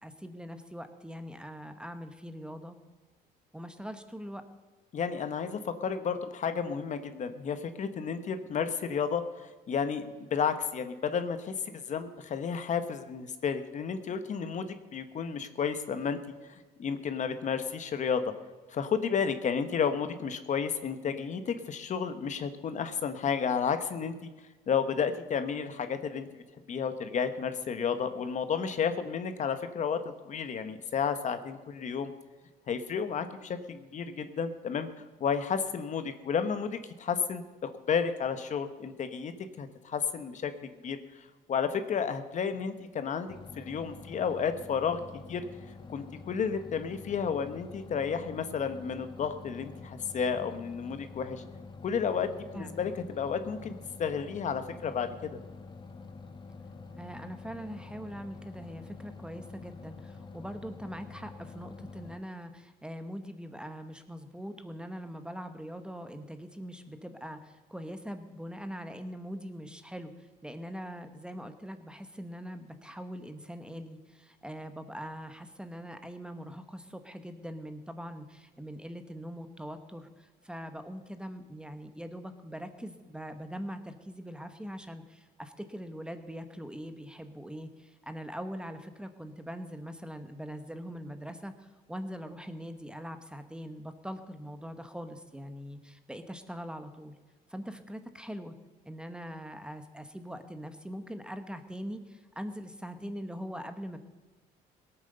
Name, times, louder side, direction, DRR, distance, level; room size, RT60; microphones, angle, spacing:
voice 1, 0.0-2.8 3.5-4.4 52.5-52.9 56.9-97.2 97.5-98.5 98.8-104.0, equal, 5° right, 9 dB, 1.1 m, -42 dB
voice 2, 4.9-16.2 16.8-18.2 18.7-24.3 24.7-26.4 26.7-32.1 32.7-34.9 35.2-39.3 39.6-41.0 41.5-45.0 45.3-45.4 45.9-51.4 51.8-52.9 53.2-53.7 54.0-55.3, left 6 dB, 45° left, 10 dB, 1.1 m, -32 dB
sound 1, 43.3-62.2, left 4 dB, 25° left, 1.0 m, -47 dB
17.5 x 9.0 x 6.7 m, 1.3 s
cardioid pair, 110°, 17 cm